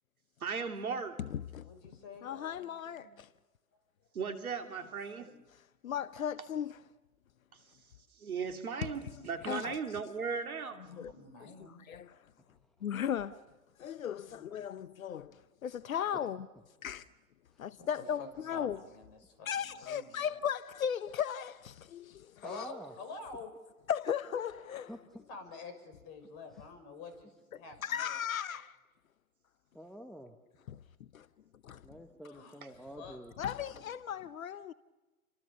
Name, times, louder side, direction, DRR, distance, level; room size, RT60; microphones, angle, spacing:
voice 1, 0.4-1.2 4.1-5.3 8.2-10.9, right 5 dB, 70° right, 2.8 m, -37 dB
voice 2, 1.6-3.1 10.8-11.9 14.4-14.5 17.8-20.3 22.4-23.5 25.3-28.2 32.3-33.2, left 4 dB, 40° left, 6.5 m, -48 dB
voice 3, 2.2-3.0 5.9-6.7 9.5-9.8 12.8-13.3 13.8-14.2 14.5-15.2 15.9-16.4 16.8-17.0 17.6-18.8 19.5-21.5 22.5-22.6 23.9-24.8 27.8-28.6 33.4-34.7, left 9 dB, 65° left, 0.9 m, -35 dB
voice 4, 22.4-22.9 24.9-25.2 26.5-26.6 29.7-30.4 31.8-33.3, equal, ahead, 1.5 m, -48 dB
29.5 x 24.5 x 6.9 m
figure-of-eight pair, 105°, 44 cm